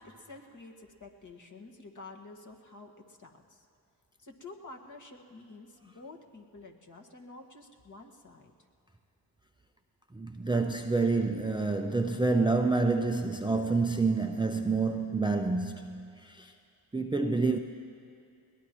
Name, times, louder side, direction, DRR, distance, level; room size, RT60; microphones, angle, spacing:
voice 1, 0.0-3.7 4.2-8.5, left 3 dB, 40° left, 1 dB, 1.7 m, -49 dB
voice 2, 10.1-16.5 16.9-17.6, right 3 dB, 10° right, 5 dB, 0.6 m, -28 dB
21.5 x 18.5 x 3.1 m, 2.4 s
cardioid pair, 60°, 47 cm